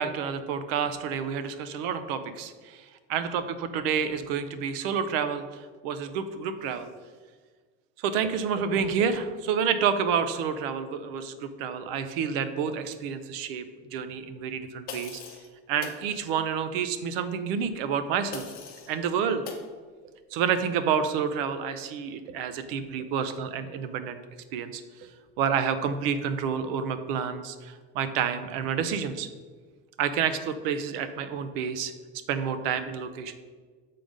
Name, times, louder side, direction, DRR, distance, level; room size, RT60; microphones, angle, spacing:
voice 1, 0.0-2.8 3.1-6.9 8.0-13.7 13.9-15.2 15.7-18.4 18.9-19.4 20.3-24.2 24.5-24.8 25.4-29.3 30.0-31.9 32.3-33.3, right 7 dB, 65° right, 11 dB, 0.6 m, -29 dB
sound 1, 14.9-15.5 15.8-16.0 18.3-18.9 19.4-19.7, left 6 dB, 30° left, 0.8 m, -40 dB
6.7 x 3.8 x 5.0 m, 1.5 s
cardioid pair, 165°, 31 cm